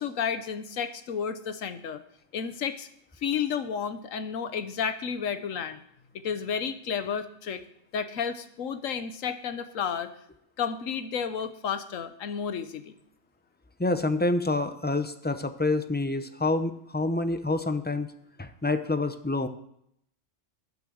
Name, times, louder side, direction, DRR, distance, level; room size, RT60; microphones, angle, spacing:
voice 1, 0.0-2.0 2.3-2.9 3.2-5.8 6.1-7.6 7.9-10.1 10.6-13.0, left 7 dB, 90° left, 11 dB, 1.3 m, -31 dB
voice 2, 13.8-18.1 18.4-19.5, left 2 dB, 15° left, 9 dB, 0.4 m, -27 dB
11.5 x 9.1 x 6.4 m, 0.74 s
omnidirectional pair, 1.3 m